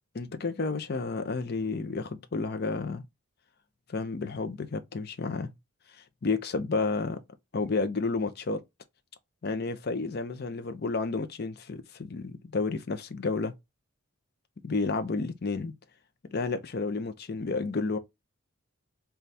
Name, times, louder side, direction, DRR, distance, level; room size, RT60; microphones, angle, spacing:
voice 1, 0.1-3.0 3.9-5.5 5.9-7.2 7.5-8.6 9.4-13.5 14.6-15.7 16.3-18.0, left 3 dB, 50° left, 0.5 m, -31 dB
4.1 x 2.3 x 3.2 m
head